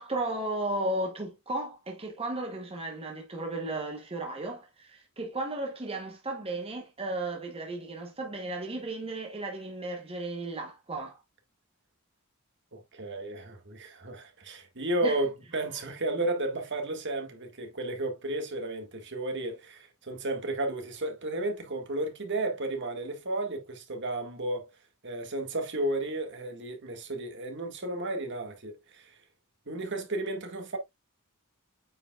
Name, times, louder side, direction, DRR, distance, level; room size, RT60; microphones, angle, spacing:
voice 1, 0.0-11.2 15.0-15.2, right 2 dB, 25° right, 1.1 m, -34 dB
voice 2, 12.7-24.7 25.0-29.2 29.7-30.8, right 2 dB, 55° right, 1.9 m, -33 dB
8.7 x 4.9 x 2.4 m
head